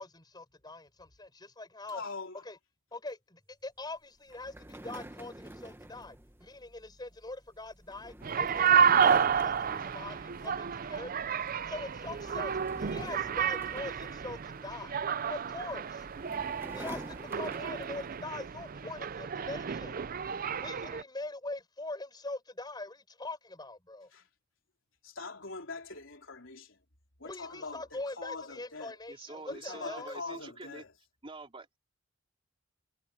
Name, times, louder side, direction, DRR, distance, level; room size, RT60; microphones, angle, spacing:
voice 1, 0.0-2.0 2.4-2.6 2.9-15.0 15.3-16.1 16.7-19.9 20.6-24.1 27.2-30.2, left 2 dB, 20° left, 4.7 m, -43 dB
voice 2, 1.9-2.4 24.1-24.3 25.0-26.8 27.2-28.9 29.5-30.9, left 4 dB, 70° left, 4.1 m, -43 dB
sound 1, 4.3-10.8 11.2-11.5 11.9-14.9 15.7-18.2, right 1 dB, 10° right, 1.4 m, -48 dB
sound 2, 8.2-21.0, right 7 dB, 45° right, 0.5 m, -30 dB
voice 3, 29.1-30.9 31.2-31.8, right 3 dB, 30° right, 3.3 m, -46 dB
head